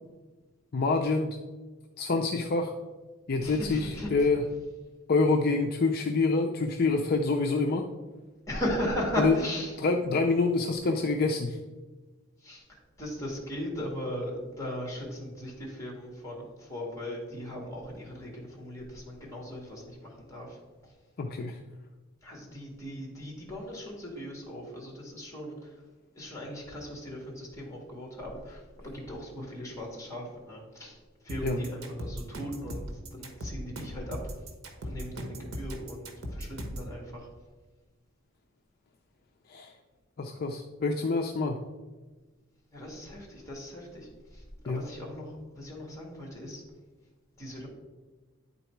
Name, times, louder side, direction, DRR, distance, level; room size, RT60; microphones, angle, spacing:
voice 1, 0.7-1.4 2.0-2.7 3.3-4.4 5.1-7.9 9.2-9.3 9.8-11.6 21.2-21.6 31.4-31.6 39.5-39.7 40.2-41.6 44.7-44.8, left 3 dB, 45° left, 3 dB, 0.4 m, -26 dB
voice 2, 3.4-4.3 8.5-9.8 12.4-20.9 22.2-25.8 26.1-34.3 34.8-37.3 42.7-46.6 47.4-47.7, equal, 15° left, -1 dB, 1.8 m, -38 dB
sound 1, 31.3-36.9, equal, 75° right, 1.2 m, -38 dB
9.7 x 4.0 x 4.5 m, 1.3 s
head